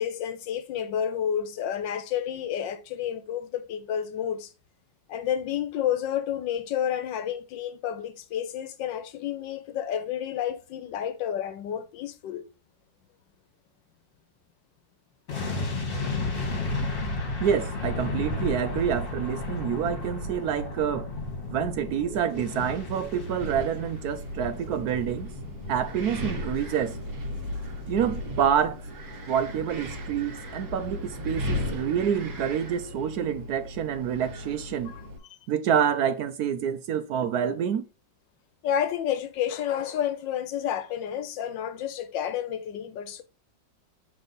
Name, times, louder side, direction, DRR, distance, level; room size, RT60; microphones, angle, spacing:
voice 1, 0.0-4.5 5.1-12.4 34.8-35.0 35.3-35.4 38.6-43.2, left 9 dB, 85° left, 1.4 m, -30 dB
sound 1, 15.3-28.4 28.7-28.9, left 2 dB, 45° left, 1.8 m, -34 dB
voice 2, 17.4-21.1 21.5-25.3 25.7-27.0 27.9-28.8 29.3-34.9 35.5-37.8, right 8 dB, 70° right, 1.0 m, -27 dB
Wind, 22.5-35.2, left 1 dB, 45° right, 1.5 m, -36 dB
7.0 x 3.6 x 3.9 m
omnidirectional pair, 2.0 m